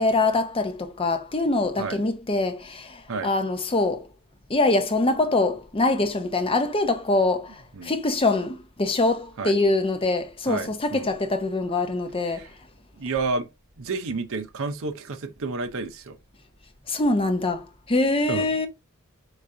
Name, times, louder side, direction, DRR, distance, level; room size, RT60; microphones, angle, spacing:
voice 1, 0.0-4.1 4.5-12.5 16.9-18.7, left 2 dB, 25° left, 0.7 m, -24 dB
voice 2, 10.5-11.1 12.3-12.5 13.0-13.5 13.8-16.2 18.3-18.5, right 3 dB, 60° right, 0.7 m, -30 dB
5.0 x 3.6 x 2.6 m
head